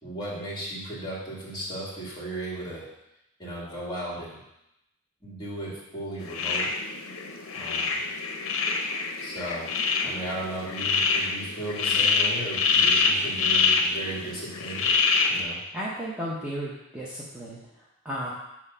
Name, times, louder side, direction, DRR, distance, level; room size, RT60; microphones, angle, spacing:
voice 1, 0.0-2.8 3.4-4.4 5.2-6.7 7.5-8.0 9.2-9.7 10.0-14.9 15.3-15.6, right 1 dB, 20° left, -5 dB, 2.1 m, -36 dB
sound 1, 6.2-15.4, left 5 dB, 65° left, 0.7 m, -26 dB
voice 2, 15.7-18.3, equal, 5° right, -8 dB, 0.8 m, -34 dB
6.1 x 3.7 x 5.5 m, 0.85 s
head